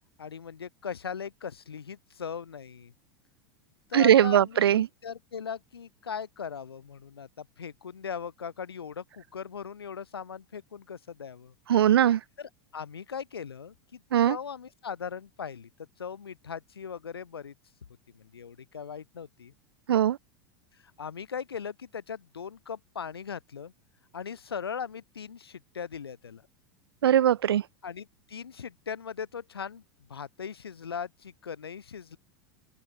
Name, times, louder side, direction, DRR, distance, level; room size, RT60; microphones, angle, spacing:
voice 1, 0.2-2.9 3.9-11.5 12.4-15.7 16.0-17.5 18.1-19.5 20.7-23.7 24.1-26.5 27.8-29.8 30.1-32.2, left 7 dB, 90° left, 4.8 m, -39 dB
voice 2, 3.9-4.9 11.7-12.2 14.1-14.4 19.9-20.2 27.0-27.6, right 10 dB, 85° right, 0.5 m, -20 dB
open air
hypercardioid pair, 90°, 12 cm